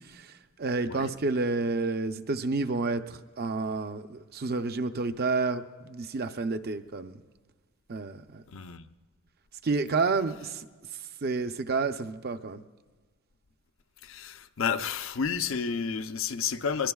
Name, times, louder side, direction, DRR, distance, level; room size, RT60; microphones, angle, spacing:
voice 1, 0.6-7.2 7.9-8.4 9.6-10.6 11.2-12.6, right 3 dB, 45° right, 0.6 m, -30 dB
voice 2, 8.5-8.9 14.0-16.9, left 6 dB, 65° left, 0.6 m, -31 dB
22.5 x 21.5 x 2.4 m
head